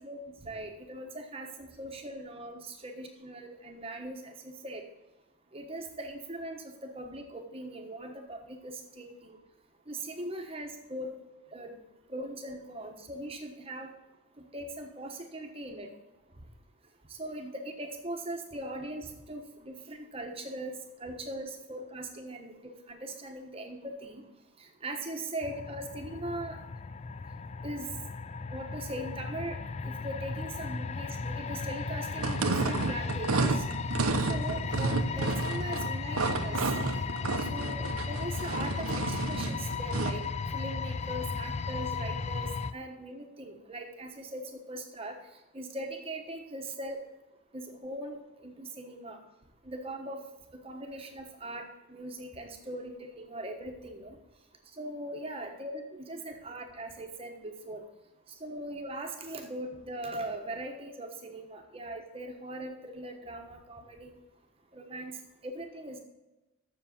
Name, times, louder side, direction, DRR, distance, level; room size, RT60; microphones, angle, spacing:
voice 1, 0.0-4.8 5.5-9.4 9.9-11.1 11.5-11.8 12.1-13.9 14.5-15.9 17.1-24.2 24.6-26.6 27.6-27.9 28.5-29.6 29.8-33.6 34.2-36.7 37.4-40.2 40.5-44.4 44.7-45.2 45.5-47.0 47.5-49.2 49.6-50.2 50.6-54.2 54.8-57.8 58.4-64.1 64.7-65.2 65.4-66.0, right 1 dB, 25° right, 3 dB, 1.2 m, -40 dB
sound 1, 25.4-42.7, left 4 dB, 30° left, 0.3 m, -35 dB
sound 2, 32.2-40.3, right 3 dB, 80° right, 0.9 m, -31 dB
7.5 x 7.0 x 7.0 m, 1.1 s
head